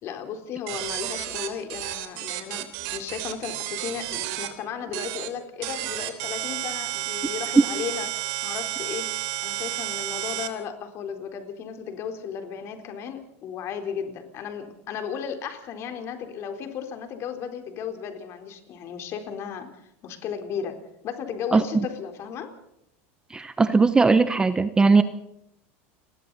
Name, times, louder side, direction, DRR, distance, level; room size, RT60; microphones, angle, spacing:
voice 1, 0.0-2.7 2.9-9.1 9.4-19.7 20.0-20.8 21.0-22.5 24.9-25.0, left 7 dB, 40° left, 6 dB, 3.9 m, -35 dB
sound 1, 0.7-4.5 4.9-5.3 5.6-10.5, right 15 dB, 60° right, 3.4 m, -31 dB
voice 2, 23.3-25.0, right 4 dB, 10° right, 12 dB, 0.9 m, -19 dB
30.0 x 22.0 x 4.1 m, 0.81 s
supercardioid pair, 140°, 7 cm